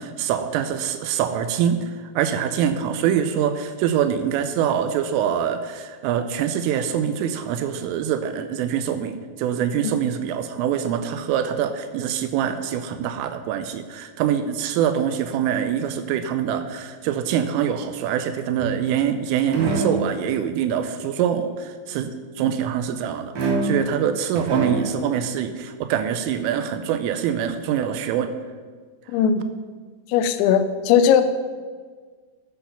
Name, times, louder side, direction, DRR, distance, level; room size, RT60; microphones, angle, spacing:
voice 1, 0.0-28.3, right 9 dB, 80° right, 9 dB, 3.1 m, -24 dB
sound 1, 18.6-19.1 19.5-20.1 23.4-24.0 24.3-25.0, right 3 dB, 55° right, 2.6 m, -25 dB
voice 2, 29.1-29.4 30.1-31.2, left 8 dB, 85° left, 10 dB, 3.4 m, -18 dB
13.0 x 8.1 x 5.8 m, 1.5 s
omnidirectional pair, 6.0 m